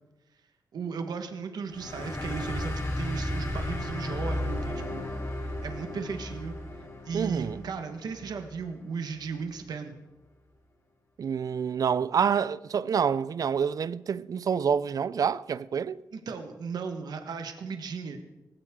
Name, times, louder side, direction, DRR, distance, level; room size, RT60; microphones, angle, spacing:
voice 1, 0.7-9.9 16.1-18.2, right 5 dB, 75° right, 1.4 m, -36 dB
sound 1, 1.7-8.8, left 1 dB, 40° left, 3.7 m, -34 dB
voice 2, 7.1-7.6 11.2-16.0, right 7 dB, 60° right, 0.5 m, -27 dB
18.5 x 16.5 x 3.8 m
cardioid pair, 90°, 7 cm